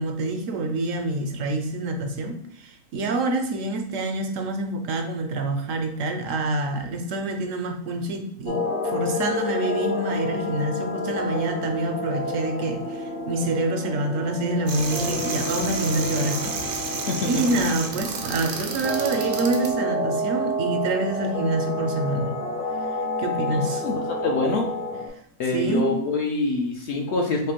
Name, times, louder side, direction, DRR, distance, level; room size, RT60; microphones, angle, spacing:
voice 1, 0.0-16.6 17.2-22.3 23.2-23.8 25.5-25.9, right 2 dB, 70° right, 5 dB, 0.9 m, -27 dB
sound 1, 8.5-25.1, left 1 dB, 90° left, 1.6 m, -29 dB
sound 2, 14.7-19.7, right 4 dB, 85° right, 1.2 m, -31 dB
voice 2, 23.5-24.7 25.4-27.5, left 3 dB, 60° left, 1 dB, 0.7 m, -25 dB
4.9 x 2.1 x 4.4 m, 0.71 s
omnidirectional pair, 1.6 m